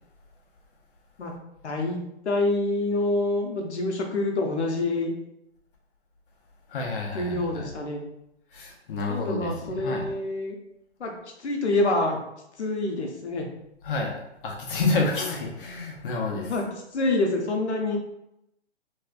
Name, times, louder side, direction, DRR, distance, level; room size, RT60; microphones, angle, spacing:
voice 1, 1.6-5.1 7.1-8.0 9.1-10.5 11.0-11.1 11.4-12.2 12.6-13.5 16.5-16.7 16.9-18.0, left 2 dB, 75° left, 2 dB, 0.9 m, -26 dB
voice 2, 6.7-7.7 8.5-10.1 13.8-14.2 14.4-16.6, left 3 dB, 50° left, 0 dB, 1.0 m, -29 dB
3.2 x 3.1 x 2.4 m, 0.82 s
hypercardioid pair, 140°, 34 cm